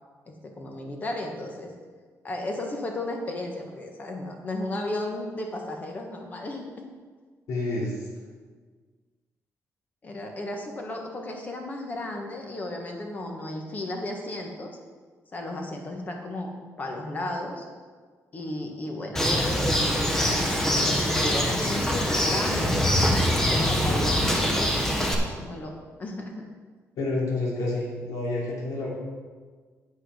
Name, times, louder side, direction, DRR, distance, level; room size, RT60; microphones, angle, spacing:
voice 1, 0.3-1.7 2.2-6.7 10.0-14.8 15.3-16.5 16.8-17.6 18.3-19.6 20.2-25.7 26.0-26.5, left 1 dB, 30° left, 2 dB, 1.3 m, -34 dB
voice 2, 7.5-8.1 27.0-28.9, left 2 dB, 85° left, -4 dB, 3.2 m, -29 dB
Bird, 19.2-25.2, equal, 5° left, 1.1 m, -24 dB
8.8 x 8.5 x 4.9 m, 1.5 s
cardioid pair, 170°, 6 cm